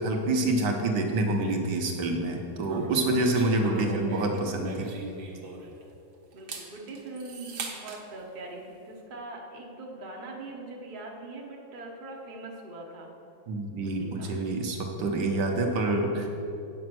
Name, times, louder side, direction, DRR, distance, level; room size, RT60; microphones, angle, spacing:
voice 1, 0.0-4.9 13.5-16.3, right 2 dB, 65° right, 3 dB, 1.6 m, -27 dB
sound 1, 2.6-5.9 6.3-8.0, right 3 dB, 90° right, 1.8 m, -40 dB
voice 2, 3.5-4.4 6.3-13.1 13.8-14.3, right 2 dB, 35° right, -1 dB, 0.9 m, -42 dB
8.6 x 6.3 x 6.1 m, 2.7 s
omnidirectional pair, 2.0 m